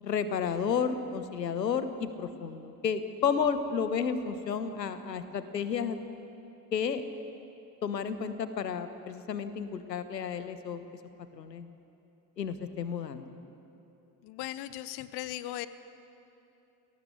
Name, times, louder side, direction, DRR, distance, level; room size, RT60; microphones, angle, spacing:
voice 1, 0.0-6.0 6.7-7.0 7.8-10.8 11.4-11.7 12.4-13.3, left 6 dB, 85° left, 11 dB, 1.2 m, -32 dB
voice 2, 14.2-15.7, left 15 dB, 55° left, 15 dB, 0.9 m, -38 dB
28.5 x 19.0 x 7.0 m, 2.9 s
figure-of-eight pair, 60°, 48 cm